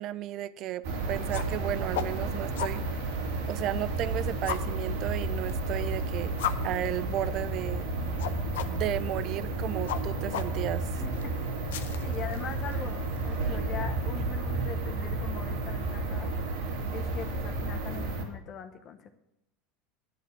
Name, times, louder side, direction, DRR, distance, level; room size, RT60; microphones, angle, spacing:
voice 1, 0.0-2.9 3.5-6.3 6.6-7.9 8.6-11.0 13.5-13.6, right 12 dB, 50° right, 17 dB, 0.5 m, -34 dB
sound 1, 0.8-18.2, right 2 dB, 85° right, 2.5 m, -32 dB
sound 2, 1.1-13.4, left 11 dB, 90° left, 0.7 m, -40 dB
voice 2, 11.0-11.4 12.0-16.3 16.9-19.1, left 8 dB, 45° left, 7 dB, 0.9 m, -41 dB
11.0 x 7.3 x 7.3 m, 0.84 s
supercardioid pair, 120°, 0 cm